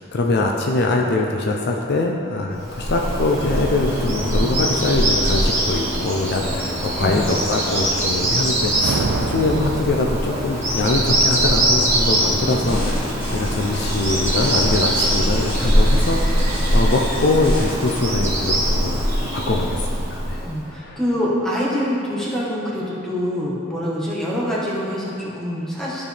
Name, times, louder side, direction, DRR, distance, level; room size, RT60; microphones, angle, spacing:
voice 1, 0.1-19.0 19.3-19.8 20.1-20.4 20.8-21.0, left 2 dB, 55° left, 0 dB, 0.5 m, -23 dB
Bird vocalization bird call bird song, 2.6-20.6, right 1 dB, 15° right, 1.7 m, -22 dB
voice 2, 6.9-7.3 12.6-12.7 20.4-26.0, equal, 5° left, -7 dB, 1.5 m, -25 dB
sound 1, 8.5-10.9, right 3 dB, 85° right, 0.5 m, -27 dB
sound 2, 12.7-18.0, equal, 25° left, 1.8 m, -35 dB
13.0 x 4.4 x 3.5 m, 2.6 s
head